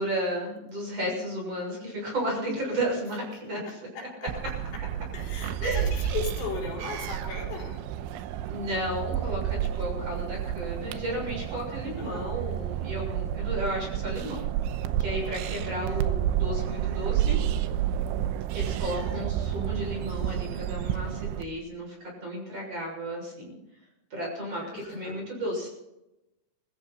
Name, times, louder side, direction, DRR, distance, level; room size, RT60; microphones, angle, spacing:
voice 1, 0.0-3.8 5.6-5.9 8.5-14.5 15.0-17.4 18.5-23.5 24.1-25.7, equal, 30° right, -1 dB, 7.5 m, -33 dB
voice 2, 3.6-4.6 5.1-7.8 12.0-12.4 16.4-18.3 24.6-25.2, left 4 dB, 65° left, -2 dB, 6.2 m, -38 dB
sound 1, 4.3-21.4, right 11 dB, 90° right, 3.2 m, -30 dB
23.0 x 14.5 x 4.3 m, 0.93 s
omnidirectional pair, 5.4 m